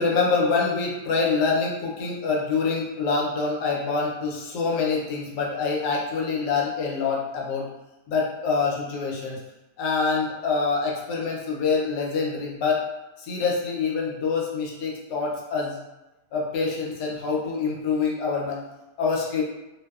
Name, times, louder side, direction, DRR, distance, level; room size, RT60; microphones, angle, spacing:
voice 1, 0.0-7.7 8.1-9.4 9.8-12.8 13.2-15.8 16.3-18.6 19.0-19.4, left 4 dB, 80° left, -2 dB, 1.2 m, -25 dB
2.9 x 2.0 x 2.3 m, 1.0 s
omnidirectional pair, 1.8 m